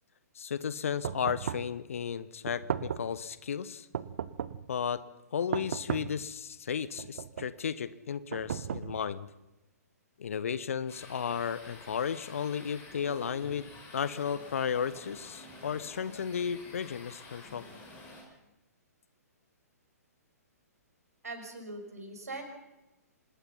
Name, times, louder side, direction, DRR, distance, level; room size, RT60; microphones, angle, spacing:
voice 1, 0.3-3.9 4.7-5.0 5.3-9.3 10.2-17.7, left 7 dB, 55° left, 16 dB, 1.2 m, -34 dB
sound 1, 1.0-1.8 2.5-3.2 3.9-4.7 5.5-6.3 7.0-7.6 8.3-9.2, right 9 dB, 50° right, 1.0 m, -36 dB
Static noise, 10.9-18.2, left 2 dB, 20° left, 7.2 m, -50 dB
voice 2, 21.2-22.4, right 2 dB, 70° right, 5 dB, 6.1 m, -41 dB
26.0 x 20.5 x 5.7 m, 0.97 s
figure-of-eight pair, 120°, 9 cm